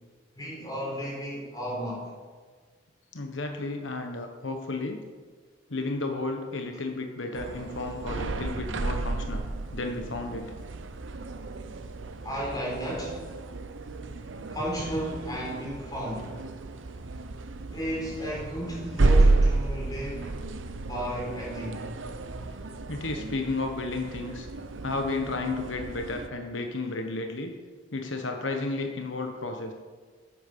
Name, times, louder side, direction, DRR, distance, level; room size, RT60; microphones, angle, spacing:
voice 1, 0.3-2.1 12.2-13.3 14.5-16.3 17.7-20.3 20.9-22.0, equal, 20° left, -3 dB, 4.3 m, -34 dB
voice 2, 3.1-5.0 5.7-10.5 22.9-24.5 24.8-27.5 27.9-29.7, left 2 dB, 85° left, 4 dB, 1.2 m, -33 dB
sound 1, 7.3-26.3, right 2 dB, 85° right, 0.7 m, -31 dB
11.0 x 8.8 x 6.8 m, 1.5 s
head